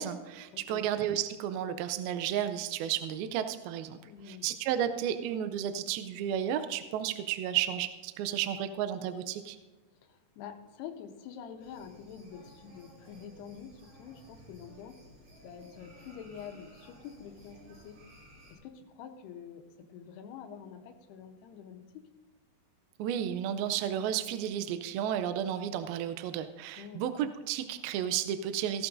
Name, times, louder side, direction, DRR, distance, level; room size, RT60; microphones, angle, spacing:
voice 1, 0.0-4.0 4.3-9.6 23.0-28.9, right 10 dB, 80° right, 10 dB, 2.2 m, -32 dB
voice 2, 0.5-0.9 4.0-4.5 10.0-15.1 15.4-18.1 18.5-22.0 26.8-27.0, left 7 dB, 85° left, 6 dB, 3.0 m, -47 dB
sound 1, 11.6-18.5, equal, 35° right, 4.0 m, -55 dB
16.5 x 13.0 x 2.6 m, 1.3 s
omnidirectional pair, 4.7 m